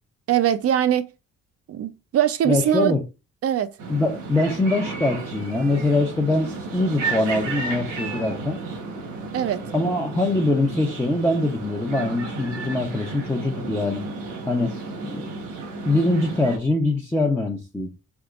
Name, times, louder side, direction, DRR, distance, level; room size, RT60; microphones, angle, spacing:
voice 1, 0.3-1.1 1.7-2.9 3.4-3.7 9.3-9.6, right 10 dB, 50° right, 0.5 m, -21 dB
voice 2, 2.5-3.0 3.9-8.6 9.7-14.1 14.5-14.8 15.0-15.3 15.9-17.9, left 2 dB, 10° left, 0.7 m, -23 dB
sound 1, 3.8-16.6, right 3 dB, 85° right, 1.2 m, -33 dB
4.2 x 3.5 x 2.4 m
cardioid pair, 90°, 30 cm